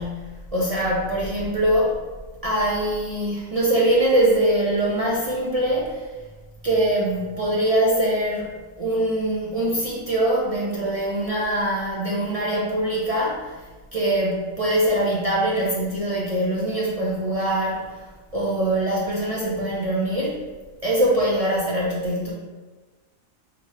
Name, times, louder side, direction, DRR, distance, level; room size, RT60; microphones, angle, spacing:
voice 1, 0.0-2.0 2.4-6.1 6.6-13.6 13.9-18.0 18.3-20.4 20.8-22.3, right 1 dB, 65° right, -5 dB, 0.3 m, -23 dB
4.1 x 3.3 x 2.7 m, 1.3 s
omnidirectional pair, 1.4 m